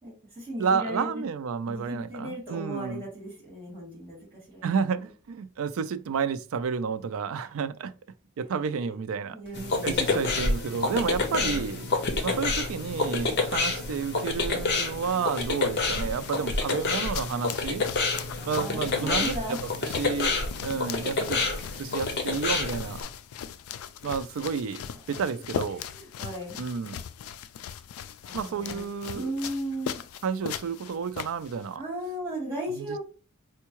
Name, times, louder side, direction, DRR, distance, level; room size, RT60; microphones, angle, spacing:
voice 1, 0.0-1.3 1.7-4.7 8.8-9.0 9.3-10.5 11.3-11.6 18.4-19.6 25.8-26.6 28.2-28.8 29.1-30.0 31.7-33.0, right 1 dB, 10° right, 2.0 m, -36 dB
voice 2, 0.6-3.0 4.6-7.9 8.4-12.0 12.2-17.8 18.5-19.4 19.8-21.5 21.8-23.0 24.0-25.8 26.6-27.0 28.3-29.3 30.2-31.8 32.7-33.0, right 6 dB, 70° right, 0.4 m, -31 dB
sound 1, 9.4-17.8, equal, 50° right, 1.2 m, -51 dB
sound 2, 9.5-23.0, left 3 dB, 50° left, 0.7 m, -28 dB
sound 3, 15.0-31.8, left 9 dB, 80° left, 0.3 m, -40 dB
4.5 x 2.2 x 2.9 m
head